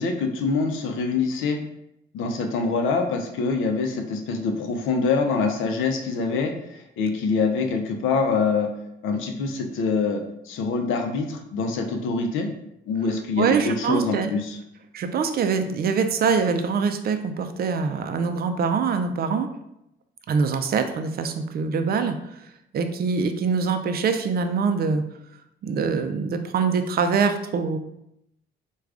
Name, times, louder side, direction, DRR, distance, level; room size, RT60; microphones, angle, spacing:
voice 1, 0.0-1.6 2.1-8.7 9.0-12.5 12.9-14.6, left 4 dB, 85° left, 4 dB, 0.5 m, -25 dB
voice 2, 13.4-14.3 14.9-19.5 20.3-22.4 22.7-25.0 25.6-27.8, right 5 dB, 50° right, 8 dB, 0.4 m, -24 dB
4.6 x 2.3 x 2.5 m, 0.81 s
cardioid pair, 90°, 20 cm